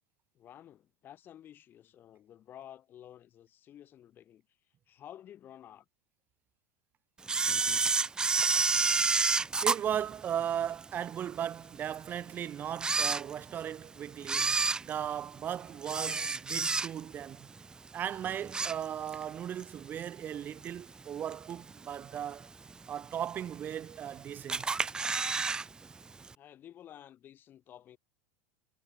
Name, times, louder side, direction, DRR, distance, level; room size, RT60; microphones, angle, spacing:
voice 1, 0.3-4.4 4.9-5.8 26.4-28.0, left 11 dB, 35° left, 6.8 m, -52 dB
Camera, 7.3-10.8 11.3-11.4 12.1-12.2 12.7-13.7 14.2-17.2 17.6-17.9 18.2-19.3 19.6-19.7 20.6-20.7 21.3-21.7 22.1-22.2 22.4-22.5 22.7-22.8 23.5-24.1 24.5-25.7 25.9-26.0 26.3-26.4, right 4 dB, 15° right, 0.4 m, -29 dB
voice 2, 9.6-17.5 17.9-22.5 22.9-24.7, right 9 dB, 35° right, 4.2 m, -37 dB
figure-of-eight pair, 80°, 6 cm